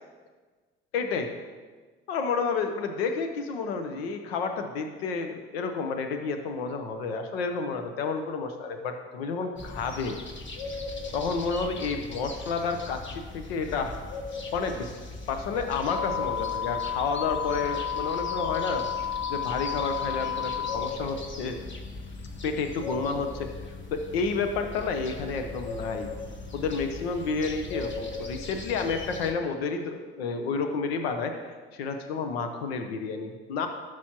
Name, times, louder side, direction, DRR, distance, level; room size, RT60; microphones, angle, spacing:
voice 1, 0.9-1.3 2.1-10.2 11.1-14.0 14.5-14.9 15.3-18.8 19.3-21.6 22.4-23.5 23.9-26.1 26.5-33.7, left 4 dB, 90° left, 6 dB, 0.7 m, -30 dB
sound 1, 9.6-29.3, left 3 dB, 40° left, 1.4 m, -39 dB
sound 2, 15.9-20.9, left 9 dB, 10° right, 1.0 m, -31 dB
12.5 x 6.1 x 2.9 m, 1.4 s
hypercardioid pair, 55°, 30 cm